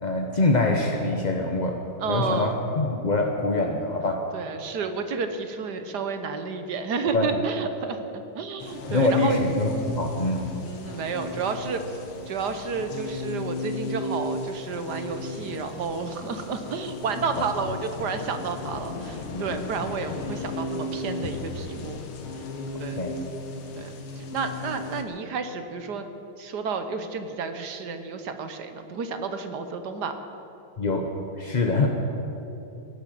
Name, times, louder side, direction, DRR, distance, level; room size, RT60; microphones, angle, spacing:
voice 1, 0.0-1.8 2.1-4.3 7.1-7.4 8.8-10.6 17.3-17.5 19.3-19.7 23.0-23.2 30.8-31.9, left 2 dB, 45° left, 2 dB, 0.5 m, -25 dB
voice 2, 2.0-2.5 4.3-9.4 10.6-12.0 12.3-22.0 22.8-23.1 23.8-26.1 26.4-30.1, right 5 dB, 60° right, 8 dB, 1.3 m, -31 dB
sound 1, 8.6-25.0, left 2 dB, 85° left, 2.1 m, -35 dB
17.0 x 10.5 x 7.6 m, 3.0 s
omnidirectional pair, 2.3 m